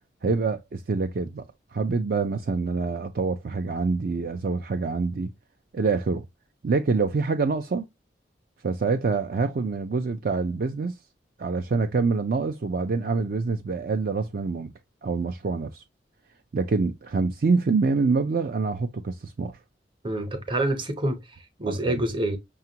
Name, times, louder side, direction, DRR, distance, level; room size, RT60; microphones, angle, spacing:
voice 1, 0.2-1.4 1.7-5.3 5.7-6.3 6.6-7.9 8.6-11.0 11.4-14.7 15.0-15.8 16.5-19.5 21.7-22.0, right 4 dB, 55° right, 0.4 m, -26 dB
voice 2, 20.0-22.4, right 1 dB, 25° right, 0.8 m, -27 dB
5.8 x 2.4 x 2.8 m
head